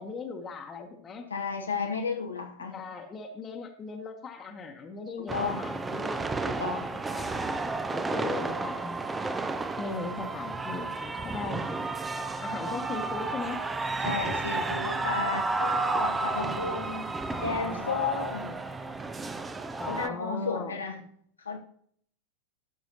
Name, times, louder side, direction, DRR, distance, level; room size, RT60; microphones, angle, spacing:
voice 1, 0.0-1.2 2.7-6.3 6.9-7.5 7.9-9.0 9.8-11.7 12.4-13.6 17.3-18.6 19.8-20.8, left 4 dB, 20° left, 2 dB, 1.0 m, -38 dB
voice 2, 1.3-2.8 5.2-5.7 6.5-6.9 14.0-17.1 17.4-18.5 19.9-21.0 21.4-21.6, left 4 dB, 75° left, 2 dB, 0.7 m, -33 dB
sound 1, 5.3-20.1, right 3 dB, 15° right, 0.5 m, -32 dB
13.0 x 6.2 x 2.9 m, 0.63 s
figure-of-eight pair, 90°, 0 cm